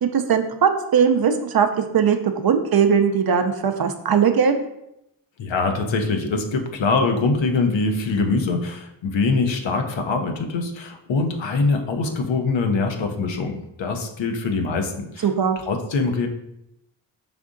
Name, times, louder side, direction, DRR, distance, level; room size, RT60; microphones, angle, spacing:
voice 1, 0.0-1.7 1.9-2.2 2.4-4.5 15.2-15.6, right 7 dB, 55° right, 6 dB, 0.6 m, -19 dB
voice 2, 5.4-15.3 15.6-16.3, left 3 dB, 75° left, 5 dB, 0.7 m, -23 dB
5.1 x 3.5 x 2.5 m, 0.84 s
cardioid pair, 55°, 46 cm